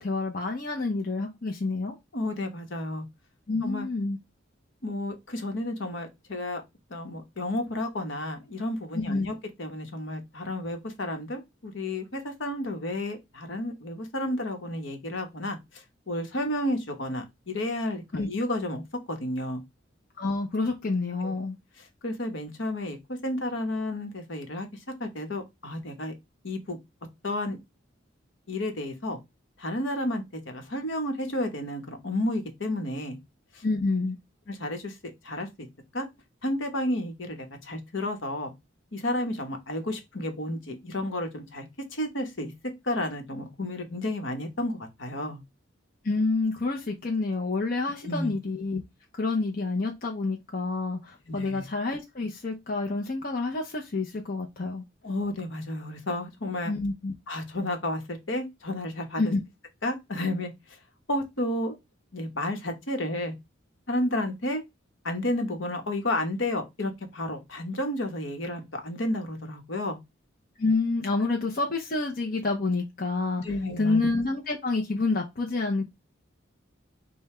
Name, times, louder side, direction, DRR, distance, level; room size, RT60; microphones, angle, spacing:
voice 1, 0.0-1.9 3.5-4.2 8.9-9.3 18.1-18.3 20.2-21.6 33.6-34.2 46.0-48.8 49.1-54.8 56.7-57.1 59.2-59.4 70.6-73.4 73.8-75.8, left 3 dB, 45° left, 0.7 m, -28 dB
voice 2, 2.1-3.0 3.6-3.9 4.8-6.6 6.9-18.8 19.1-19.6 21.2-21.3 21.8-26.1 26.4-26.8 27.2-27.6 28.5-29.2 29.6-33.2 33.5-33.6 34.5-35.0 35.2-35.7 35.9-36.1 36.4-38.5 38.9-41.7 41.9-42.5 42.8-45.4 48.0-48.3 51.3-51.6 55.0-56.7 57.3-59.3 59.8-60.8 61.1-61.7 62.1-63.3 63.9-64.6 65.0-70.0 73.4-74.0, left 1 dB, 70° left, 1.1 m, -31 dB
5.4 x 2.2 x 4.3 m
head